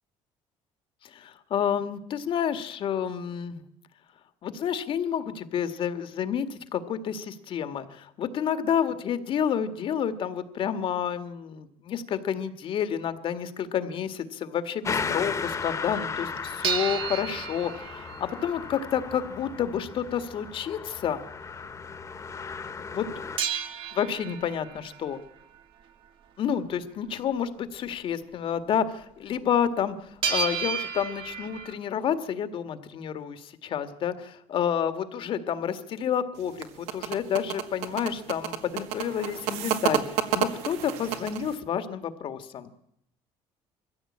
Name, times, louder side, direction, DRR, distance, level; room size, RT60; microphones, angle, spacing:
voice 1, 1.0-3.6 4.4-21.2 22.9-23.1 23.9-25.2 26.4-42.7, left 8 dB, 55° left, 11 dB, 1.8 m, -29 dB
sound 1, 14.8-23.4, left 5 dB, 30° left, 1.5 m, -35 dB
sound 2, 16.6-19.0 23.4-25.2 30.2-31.7, right 6 dB, 50° right, 1.9 m, -32 dB
sound 3, 36.4-41.5, right 10 dB, 85° right, 1.9 m, -30 dB
21.5 x 15.5 x 8.7 m, 0.79 s
cardioid pair, 110°, 11 cm